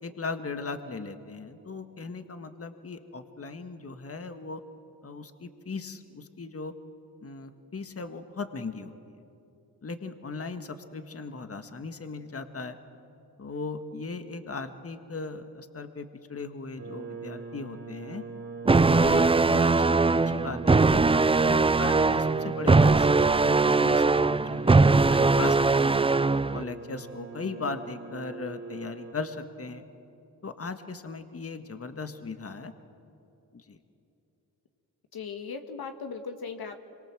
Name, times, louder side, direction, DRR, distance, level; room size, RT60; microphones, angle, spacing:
voice 1, 0.0-4.6 5.0-6.7 7.2-8.9 9.8-12.8 13.4-18.2 18.7-21.0 21.4-23.1 23.4-26.0 26.5-29.8 30.4-32.7 33.5-33.8, left 4 dB, 35° left, 8 dB, 1.7 m, -38 dB
sound 1, 16.8-29.1, right 4 dB, 60° right, 3.8 m, -40 dB
sound 2, 18.7-26.6, right 3 dB, 15° right, 0.5 m, -21 dB
voice 2, 18.9-19.2 35.1-36.8, left 5 dB, 65° left, 6 dB, 1.9 m, -38 dB
26.0 x 23.5 x 7.6 m, 2.8 s
supercardioid pair, 50°, 39 cm